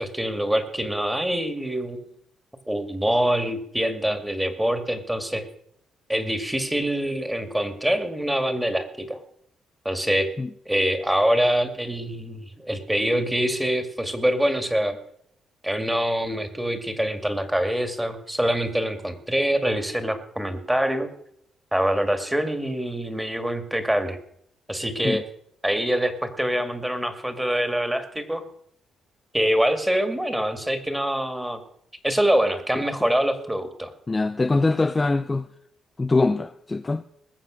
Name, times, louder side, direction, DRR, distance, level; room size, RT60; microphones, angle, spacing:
voice 1, 0.0-2.1 2.7-5.4 6.1-9.2 9.9-10.3 10.7-15.0 15.6-21.1 21.7-24.2 24.7-25.2 25.6-28.4 29.3-31.6 32.0-33.9, equal, 5° right, 2.0 m, -25 dB
voice 2, 34.1-35.5 36.0-37.0, left 3 dB, 20° left, 0.5 m, -23 dB
20.0 x 7.5 x 6.3 m
cardioid pair, 90°, 0 cm